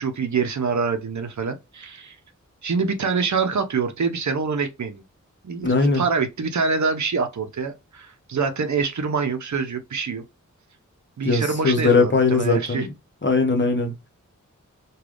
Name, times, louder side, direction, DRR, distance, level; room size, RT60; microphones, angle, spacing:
voice 1, 0.0-2.2 2.6-5.0 5.4-10.2 11.2-12.9, right 5 dB, 65° right, 0.6 m, -25 dB
voice 2, 5.6-6.1 11.2-12.9 13.2-14.1, left 3 dB, 35° left, 0.9 m, -20 dB
3.2 x 2.3 x 2.4 m
wide cardioid pair, 45°, 31 cm